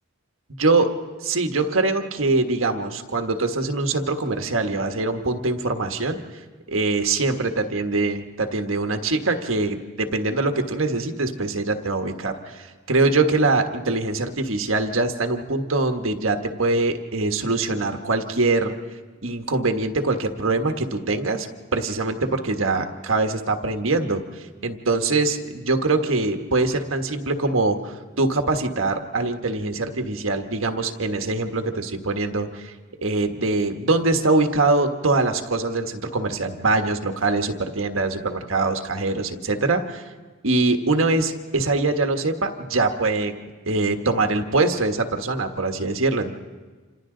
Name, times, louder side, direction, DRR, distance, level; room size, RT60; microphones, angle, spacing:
voice 1, 0.6-0.9 1.2-6.2 6.7-18.7 19.2-21.5 21.7-32.7 33.0-40.1 40.4-43.3 43.7-46.3, right 3 dB, 75° right, 5 dB, 1.4 m, -23 dB
29.0 x 27.0 x 3.9 m, 1.4 s
head